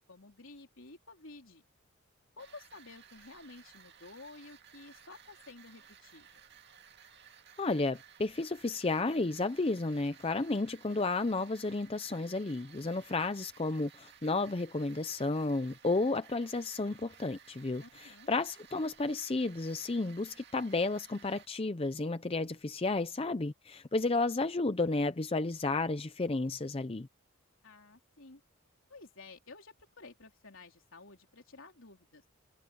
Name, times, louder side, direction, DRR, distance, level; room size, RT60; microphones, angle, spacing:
voice 1, 0.0-1.6 2.4-6.4 17.8-18.3 27.6-28.4 28.9-32.2, left 3 dB, 65° left, 3.8 m, -52 dB
sound 1, 2.4-21.5, right 8 dB, 50° right, 2.2 m, -58 dB
voice 2, 7.6-27.1, left 3 dB, 25° left, 0.5 m, -32 dB
head